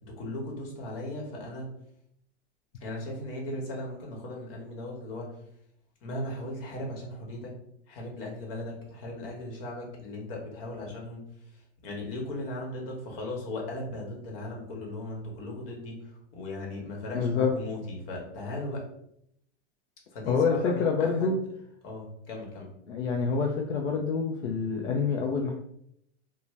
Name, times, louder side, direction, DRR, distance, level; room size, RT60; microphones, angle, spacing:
voice 1, 0.0-1.7 2.8-5.3 6.0-7.5 7.9-11.3 11.5-18.8 20.1-21.4 21.8-22.7, left 1 dB, 50° left, 0 dB, 1.1 m, -37 dB
voice 2, 17.1-17.5 20.2-21.4 22.9-25.5, left 5 dB, 75° left, 1 dB, 0.5 m, -27 dB
2.5 x 2.2 x 3.2 m, 0.73 s
hypercardioid pair, 140°, 35 cm